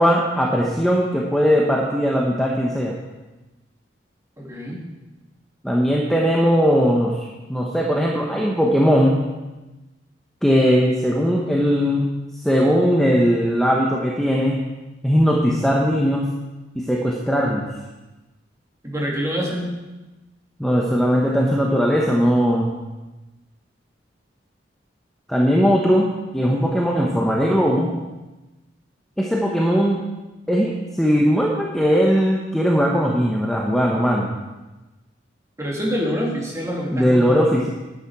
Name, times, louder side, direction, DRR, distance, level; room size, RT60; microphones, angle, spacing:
voice 1, 0.0-2.9 5.6-9.2 10.4-12.1 12.4-14.6 15.0-16.3 16.9-17.7 20.6-22.7 25.3-26.1 26.3-27.9 29.2-30.0 30.5-34.3 36.9-37.7, equal, ahead, -3 dB, 0.9 m, -19 dB
voice 2, 4.4-4.8 18.8-19.7 35.6-37.5, equal, 15° right, -2 dB, 2.1 m, -26 dB
10.5 x 8.6 x 4.7 m, 1.1 s
head